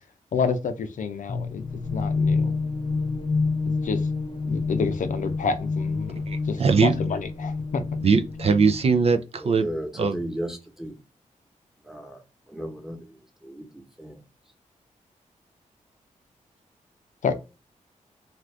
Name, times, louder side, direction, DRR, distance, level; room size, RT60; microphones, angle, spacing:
voice 1, 0.3-1.6 1.9-2.5 3.8-4.0 4.5-7.8 17.2-17.3, left 5 dB, 70° left, 0.5 m, -28 dB
sound 1, 1.3-9.0, left 4 dB, 35° left, 0.8 m, -28 dB
voice 2, 6.3-7.0 8.0-9.6 10.0-10.2, right 5 dB, 50° right, 0.4 m, -21 dB
voice 3, 9.4-11.0 11.8-12.2 12.5-14.2, right 1 dB, 5° right, 1.0 m, -35 dB
2.5 x 2.4 x 3.2 m
cardioid pair, 55°, 14 cm